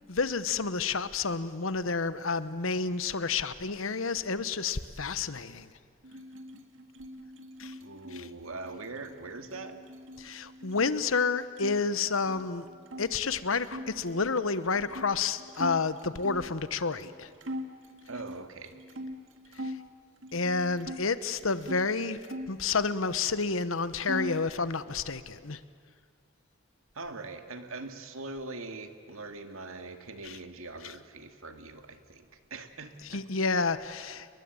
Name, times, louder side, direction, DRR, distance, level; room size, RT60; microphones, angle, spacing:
voice 1, 0.1-5.7 7.6-7.7 8.1-8.3 10.2-12.7 13.0-17.3 19.5-19.8 20.3-22.2 22.5-25.6 30.2-30.4 30.8-30.9 33.1-34.3, left 4 dB, 80° left, 13 dB, 1.1 m, -30 dB
sound 1, 6.0-11.8 12.1-13.1 13.6-16.5 17.0-17.1 17.4-19.8 20.2-21.8 22.2-23.4 23.6-24.5, equal, 70° right, 2.0 m, -42 dB
voice 2, 7.8-9.8 18.1-18.8 26.9-33.2, right 3 dB, 90° right, 7 dB, 2.1 m, -42 dB
29.0 x 21.5 x 9.0 m, 2.1 s
head